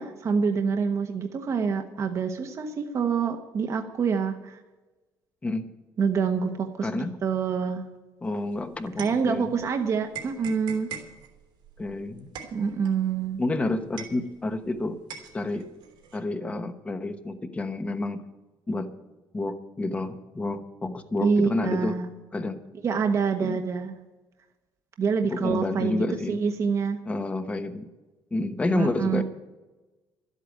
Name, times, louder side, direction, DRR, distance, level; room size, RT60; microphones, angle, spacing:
voice 1, 0.0-4.6 6.0-7.9 9.0-10.9 12.5-13.4 21.2-22.1 22.8-23.9 25.0-27.0 28.7-29.2, right 5 dB, 40° right, 5 dB, 1.1 m, -26 dB
voice 2, 6.8-7.2 8.2-9.5 11.8-12.3 13.4-15.0 15.3-15.7 16.1-18.2 18.7-18.9 19.3-22.0 22.3-22.6 23.4-23.6 25.3-26.4 27.1-27.9 28.3-29.2, left 2 dB, 15° left, 9 dB, 1.1 m, -29 dB
sound 1, 8.3-9.7 10.1-14.7 15.1-16.2, right 7 dB, 85° right, 3.0 m, -42 dB
12.5 x 8.3 x 9.1 m, 1.1 s
cardioid pair, 150°, 8 cm